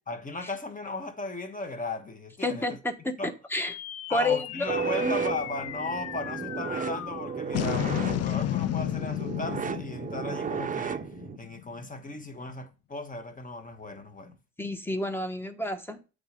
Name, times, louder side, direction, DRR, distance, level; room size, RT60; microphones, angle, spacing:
voice 1, 0.1-2.8 3.2-3.3 4.1-14.4, left 2 dB, 25° left, 1.4 m, -36 dB
voice 2, 2.4-3.7 4.1-4.7 5.0-5.2 14.6-16.0, left 2 dB, 5° left, 1.1 m, -30 dB
sound 1, 3.5-12.1, left 12 dB, 55° left, 0.5 m, -34 dB
sound 2, 4.7-11.4, right 6 dB, 25° right, 0.5 m, -33 dB
8.1 x 4.0 x 5.2 m
cardioid pair, 90°, 30 cm